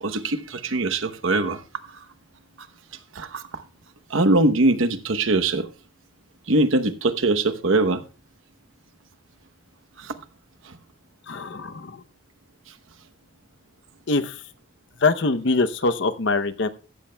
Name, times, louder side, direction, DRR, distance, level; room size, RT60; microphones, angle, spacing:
voice 1, 0.0-1.6 1.9-2.0 2.6-2.7 3.1-3.6 4.1-5.7 6.5-8.0 10.0-10.2 10.6-10.8, right 2 dB, 75° right, 0.9 m, -22 dB
voice 2, 11.3-12.0 14.1-14.4 15.0-16.7, left 3 dB, 60° left, 0.7 m, -23 dB
16.0 x 13.0 x 2.2 m
head